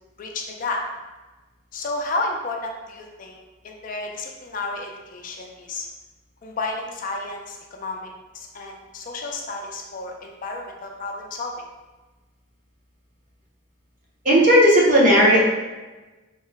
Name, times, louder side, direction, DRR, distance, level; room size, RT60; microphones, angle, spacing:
voice 1, 0.2-0.8 1.7-3.4 3.6-5.9 6.4-11.5, left 2 dB, 40° left, 1 dB, 0.4 m, -31 dB
voice 2, 14.2-15.4, equal, 40° right, -4 dB, 0.7 m, -14 dB
3.0 x 2.1 x 3.9 m, 1.2 s
head